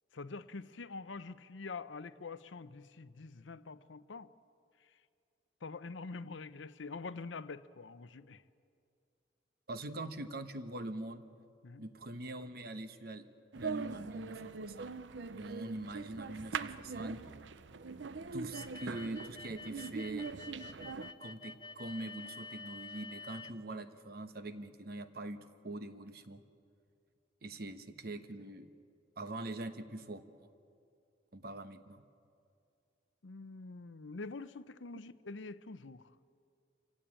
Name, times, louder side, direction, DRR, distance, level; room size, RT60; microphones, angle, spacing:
voice 1, 0.1-4.3 5.6-8.4 11.6-11.8 20.9-21.0 33.2-36.1, left 4 dB, 90° left, 14 dB, 0.7 m, -45 dB
voice 2, 9.7-11.2 11.8-13.3 13.5-15.0 15.3-17.2 18.3-20.3 21.2-26.4 27.4-28.7 29.2-30.2 31.3-32.0, right 2 dB, 55° right, 10 dB, 1.1 m, -43 dB
sound 1, 13.5-21.1, right 5 dB, 80° right, 0.6 m, -42 dB
sound 2, 18.5-23.5, left 3 dB, 20° left, 0.6 m, -49 dB
26.5 x 16.0 x 8.8 m, 2.4 s
head